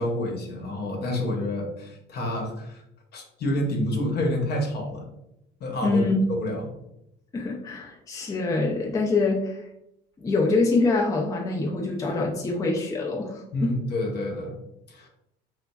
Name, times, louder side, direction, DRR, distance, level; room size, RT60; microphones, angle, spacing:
voice 1, 0.0-2.8 3.1-5.0 5.6-6.0 6.4-6.6 13.5-14.5 14.9-15.1, left 1 dB, 50° left, 1 dB, 0.8 m, -28 dB
voice 2, 5.8-6.2 7.3-9.6 10.2-13.8, left 3 dB, 15° left, -1 dB, 0.4 m, -25 dB
3.0 x 2.3 x 2.3 m, 0.82 s
supercardioid pair, 90°, 21 cm